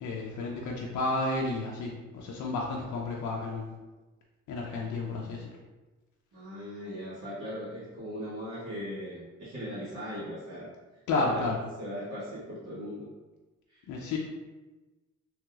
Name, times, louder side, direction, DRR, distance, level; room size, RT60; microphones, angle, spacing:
voice 1, 0.0-3.7 4.5-5.4 11.1-11.6 13.9-14.2, left 2 dB, 75° left, -1 dB, 0.5 m, -31 dB
voice 2, 6.3-10.7 11.2-11.5 11.8-13.1 13.7-13.8, equal, 60° right, -12 dB, 1.4 m, -39 dB
3.1 x 2.9 x 2.3 m, 1.2 s
cardioid pair, 90°, 30 cm